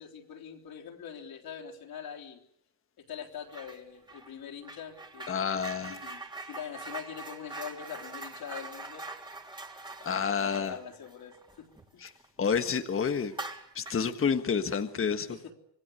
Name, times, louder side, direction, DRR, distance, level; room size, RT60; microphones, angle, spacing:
voice 1, 0.0-2.4 3.0-5.6 5.9-9.1 10.0-12.1 15.3-15.5, left 8 dB, 50° left, 3.9 m, -43 dB
sound 1, 3.5-3.8 4.1-12.3 12.6-12.7 13.3-14.1, right 2 dB, 10° right, 3.3 m, -43 dB
voice 2, 5.3-6.0 10.0-10.8 12.0-12.1 12.4-13.3 13.7-15.4, left 6 dB, 25° left, 1.6 m, -29 dB
26.5 x 20.5 x 8.2 m
cardioid pair, 130°, 47 cm